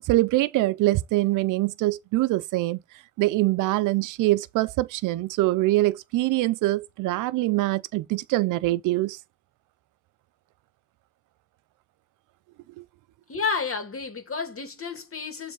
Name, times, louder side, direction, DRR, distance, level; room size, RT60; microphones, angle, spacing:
voice 1, 0.0-2.8 3.2-9.2 12.8-12.9, right 18 dB, 90° right, 0.5 m, -24 dB
voice 2, 13.3-15.5, left 5 dB, 45° left, 2.5 m, -31 dB
7.2 x 3.4 x 5.6 m
supercardioid pair, 55°, 30 cm